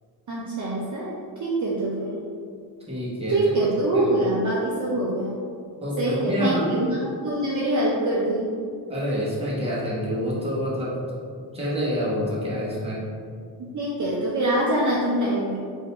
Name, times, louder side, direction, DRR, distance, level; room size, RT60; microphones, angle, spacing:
voice 1, 0.3-2.3 3.3-5.4 6.0-8.5 13.7-15.6, right 1 dB, 45° right, -6 dB, 0.7 m, -24 dB
voice 2, 2.9-3.4 3.9-4.0 5.8-6.6 8.9-10.9 11.5-13.0, equal, 15° right, -7 dB, 1.1 m, -27 dB
3.9 x 2.7 x 4.2 m, 2.2 s
cardioid pair, 130°, 43 cm